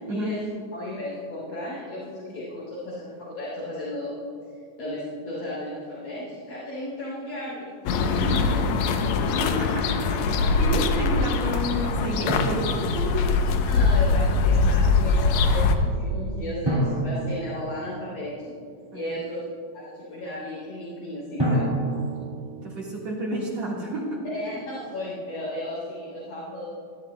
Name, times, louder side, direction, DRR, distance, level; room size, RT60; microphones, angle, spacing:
voice 1, 0.1-4.2 4.8-8.4 13.7-18.5 18.9-19.4 19.7-21.7 24.3-26.8, left 1 dB, 65° left, -9 dB, 4.7 m, -35 dB
sound 1, 7.9-15.7, left 4 dB, 85° left, 1.6 m, -22 dB
voice 2, 8.1-8.4 9.2-9.9 10.1-13.2 18.9-19.1 22.6-24.2, right 1 dB, 55° right, -5 dB, 2.6 m, -31 dB
Drum, 12.3-13.8 16.7-18.4 21.4-23.0, right 1 dB, 10° right, 1.1 m, -29 dB
21.0 x 11.0 x 2.2 m, 2.4 s
omnidirectional pair, 3.9 m